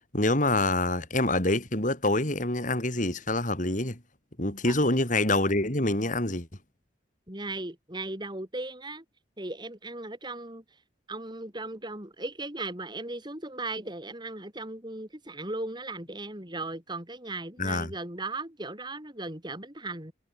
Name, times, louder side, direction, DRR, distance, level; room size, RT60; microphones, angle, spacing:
voice 1, 0.1-4.0 4.4-6.5 17.6-17.9, left 2 dB, 45° left, 6.1 m, -26 dB
voice 2, 7.3-9.0 9.4-10.6 11.1-20.1, right 2 dB, 25° right, 4.0 m, -37 dB
head